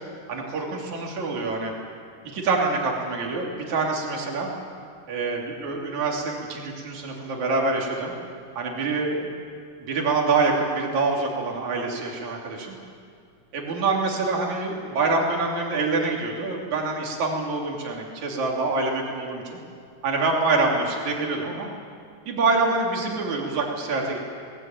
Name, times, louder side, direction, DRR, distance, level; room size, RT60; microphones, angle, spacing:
voice 1, 0.3-1.7 2.3-4.5 5.1-8.1 8.6-9.2 9.8-12.8 13.5-19.6 20.0-21.7 22.3-24.2, right 3 dB, 60° right, -1 dB, 4.3 m, -25 dB
20.0 x 19.5 x 9.0 m, 2.3 s
omnidirectional pair, 3.7 m